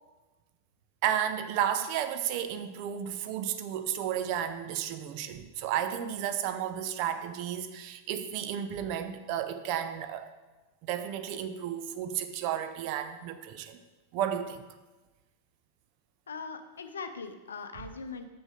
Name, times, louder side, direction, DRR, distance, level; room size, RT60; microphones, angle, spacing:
voice 1, 1.0-10.3 10.9-13.8 14.1-14.6, right 10 dB, 45° right, 9 dB, 0.6 m, -32 dB
voice 2, 16.3-18.2, left 5 dB, 70° left, 8 dB, 0.6 m, -40 dB
6.2 x 6.2 x 5.0 m, 1.2 s
figure-of-eight pair, 90°, 0 cm